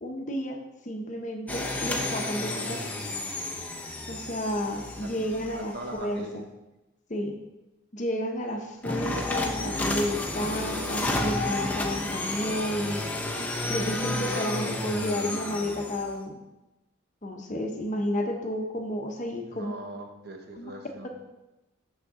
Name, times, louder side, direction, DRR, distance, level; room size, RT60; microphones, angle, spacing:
voice 1, 0.0-2.9 4.1-6.4 7.1-7.4 7.9-13.1 13.7-16.4 17.2-19.7 20.6-20.7, equal, 40° left, 3 dB, 0.9 m, -31 dB
sound 1, 1.5-6.0 8.8-16.1, left 2 dB, 10° left, 0.7 m, -31 dB
voice 2, 5.5-6.4 19.5-21.1, right 2 dB, 50° right, 3 dB, 1.0 m, -41 dB
8.9 x 6.5 x 3.7 m, 1.0 s
head